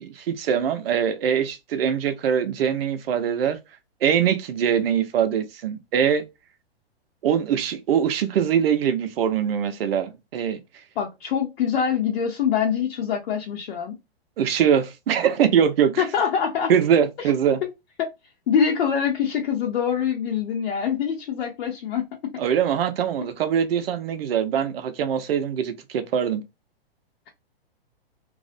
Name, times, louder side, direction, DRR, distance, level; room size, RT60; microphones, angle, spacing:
voice 1, 0.0-3.6 4.0-6.2 7.2-10.6 14.4-16.0 16.7-17.6 22.4-26.4, right 8 dB, 70° right, 0.6 m, -22 dB
voice 2, 11.0-14.0 16.0-16.7 17.2-17.3 17.6-17.7 18.0-18.1 18.5-22.3, left 7 dB, 70° left, 0.7 m, -24 dB
2.4 x 2.1 x 2.5 m
hypercardioid pair, 135°, 31 cm